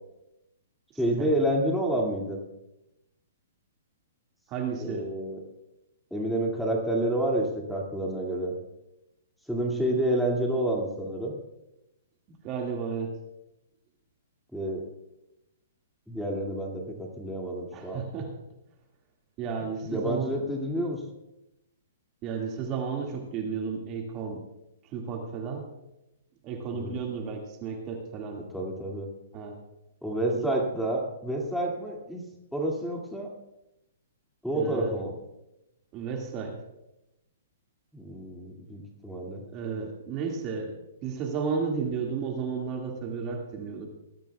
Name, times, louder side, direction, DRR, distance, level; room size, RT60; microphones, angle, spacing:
voice 1, 1.0-2.4 4.8-5.4 6.1-8.5 9.5-11.3 14.5-14.8 16.1-18.0 19.8-21.0 26.7-27.0 28.5-29.1 30.0-33.3 34.4-35.1 37.9-39.4, right 1 dB, ahead, -1 dB, 2.4 m, -29 dB
voice 2, 4.5-5.1 12.3-13.1 17.7-18.3 19.4-20.3 22.2-24.4 24.8-25.6 26.4-28.4 29.3-29.5 30.3-30.5 34.5-34.9 35.9-36.6 39.5-40.8 41.0-43.9, right 5 dB, 30° right, 1 dB, 2.1 m, -33 dB
20.0 x 14.0 x 2.4 m, 0.91 s
hypercardioid pair, 140°, 0 cm